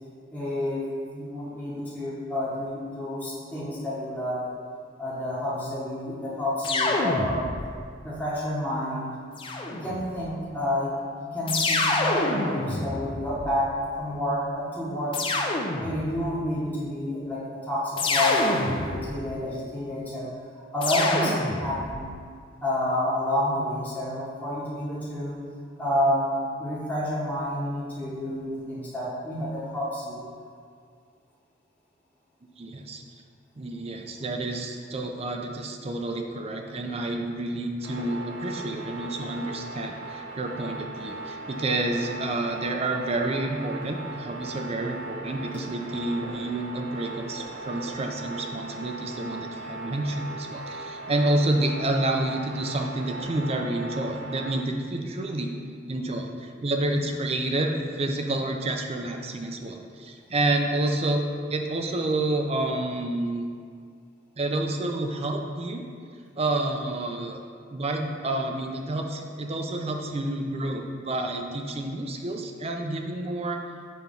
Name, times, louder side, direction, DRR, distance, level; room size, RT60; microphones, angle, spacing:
voice 1, 0.3-0.8 1.1-4.5 5.0-7.5 8.0-9.1 9.7-10.9 11.2-15.2 15.8-20.3 20.7-22.1 22.6-25.4 25.8-26.3 26.6-30.2 57.0-57.1, left 1 dB, 10° left, -9 dB, 1.0 m, -29 dB
sound 1, 6.6-7.8 9.4-10.2 11.5-13.8 15.1-16.2 18.0-19.3 20.8-22.0, left 2 dB, 25° left, 0.5 m, -27 dB
voice 2, 32.6-33.0 33.6-55.5 55.9-61.2 61.5-63.4 64.4-65.8 66.4-67.4 67.7-73.6, right 2 dB, 30° right, 3 dB, 0.5 m, -29 dB
sound 2, 37.8-54.5, right 2 dB, 70° right, 0.9 m, -39 dB
6.8 x 3.1 x 5.2 m, 2.1 s
head